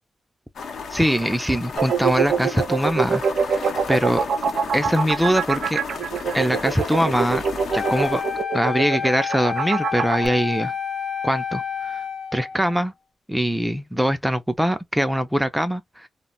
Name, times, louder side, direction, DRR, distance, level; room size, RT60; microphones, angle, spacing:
sound 1, 0.5-8.4, left 5 dB, 75° left, 0.7 m, -33 dB
voice 1, 0.9-4.3 4.7-5.8 6.3-7.4 7.7-8.2 8.5-10.7 11.2-12.0 12.3-12.9 13.3-16.1, equal, 5° right, 0.4 m, -22 dB
sound 2, 1.8-10.3, right 6 dB, 75° right, 0.4 m, -24 dB
Wind instrument woodwind instrument, 7.7-12.8, left 7 dB, 30° left, 0.7 m, -29 dB
2.1 x 2.1 x 3.8 m
cardioid pair, 100°, 0 cm